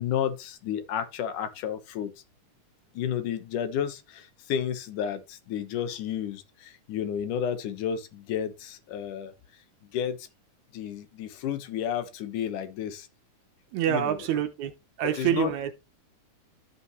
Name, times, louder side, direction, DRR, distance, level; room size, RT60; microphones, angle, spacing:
voice 1, 0.0-2.1 2.9-9.3 9.9-10.3 10.7-13.1 13.9-14.3 15.0-15.5, left 9 dB, 85° left, 2.8 m, -31 dB
voice 2, 13.7-14.7 15.0-15.7, right 11 dB, 75° right, 2.1 m, -26 dB
13.0 x 5.7 x 3.1 m
omnidirectional pair, 3.5 m